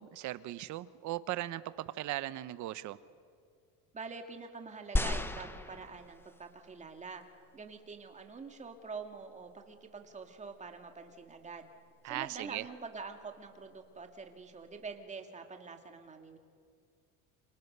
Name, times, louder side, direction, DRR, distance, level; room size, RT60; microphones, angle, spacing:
voice 1, 0.0-3.0 12.0-12.7, right 15 dB, 50° right, 15 dB, 1.0 m, -38 dB
voice 2, 3.9-7.2 7.5-11.7 12.0-16.4, right 4 dB, 20° right, 5 dB, 2.1 m, -46 dB
sound 1, 5.0-6.5 7.2-7.3, left 2 dB, 5° left, 0.9 m, -34 dB
29.0 x 26.5 x 6.8 m, 2.3 s
cardioid pair, 155°, 38 cm